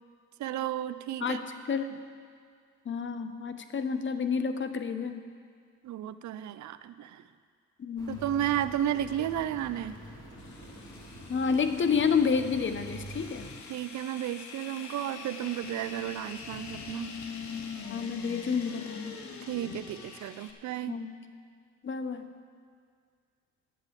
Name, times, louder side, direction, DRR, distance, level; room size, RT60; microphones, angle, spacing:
voice 1, 0.4-1.4 5.8-7.2 8.1-10.0 13.7-17.1 19.5-21.0, right 11 dB, 70° right, 12 dB, 0.6 m, -33 dB
voice 2, 1.7-2.0 2.9-5.3 7.8-8.2 11.3-13.5 17.8-19.2 20.9-21.1 21.8-22.2, left 6 dB, 40° left, 9 dB, 0.9 m, -29 dB
sound 1, 8.0-13.6, right 1 dB, 15° left, 3.2 m, -46 dB
sound 2, 10.4-20.5, left 5 dB, 70° left, 1.3 m, -43 dB
11.0 x 7.6 x 7.4 m, 2.1 s
cardioid pair, 90°, 30 cm